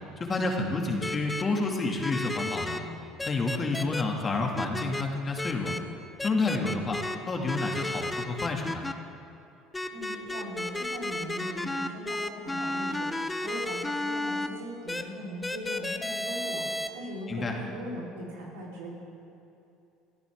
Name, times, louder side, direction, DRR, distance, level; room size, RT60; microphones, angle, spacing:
voice 1, 0.2-2.8 3.3-5.7 6.2-7.0 7.3-8.8 17.3-17.5, left 3 dB, 30° left, 1 dB, 2.4 m, -29 dB
sound 1, 1.0-1.4 2.0-2.8 3.2-4.0 4.5-5.0 5.4-5.8 6.2-7.2 7.5-8.9 9.7-14.5 14.9-15.0 15.4-16.9, left 1 dB, 15° left, 0.9 m, -32 dB
voice 2, 9.9-18.9, equal, 80° right, -4 dB, 4.1 m, -40 dB
23.0 x 14.0 x 3.7 m, 2.7 s
hypercardioid pair, 70°, 0 cm